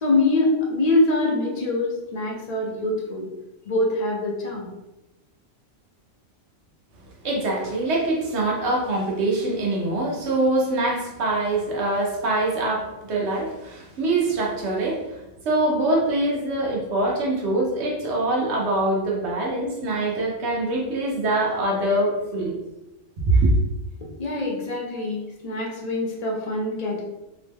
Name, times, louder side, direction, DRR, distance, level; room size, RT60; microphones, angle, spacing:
voice 1, 0.0-3.3 3.6-4.7 24.2-27.0, left 2 dB, 45° left, -2 dB, 0.5 m, -24 dB
voice 2, 7.2-15.2 15.4-22.5 23.3-23.5, right 2 dB, 60° right, -2 dB, 1.0 m, -24 dB
2.9 x 2.1 x 3.4 m, 0.98 s
omnidirectional pair, 1.4 m